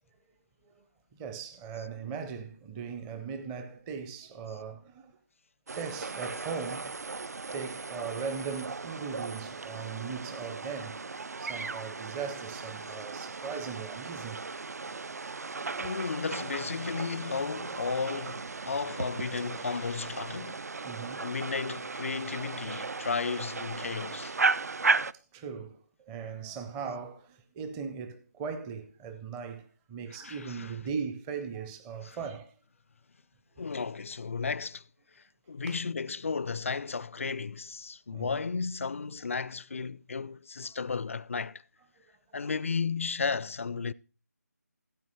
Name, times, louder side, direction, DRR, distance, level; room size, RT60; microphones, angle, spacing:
voice 1, 1.2-5.2 5.8-6.9 7.5-11.0 11.4-14.4 20.8-21.3 25.3-32.5 35.7-35.8 36.4-36.5 38.1-38.4 42.4-42.5, right 6 dB, 10° right, 0.6 m, -39 dB
sound 1, 5.7-25.1, right 4 dB, 65° right, 0.5 m, -35 dB
voice 2, 15.7-20.6 21.2-24.4 30.1-30.7 32.0-32.2 33.6-34.8 35.5-41.6 42.3-43.9, left 5 dB, 50° left, 0.4 m, -34 dB
16.0 x 8.3 x 3.1 m
figure-of-eight pair, 160°, 9 cm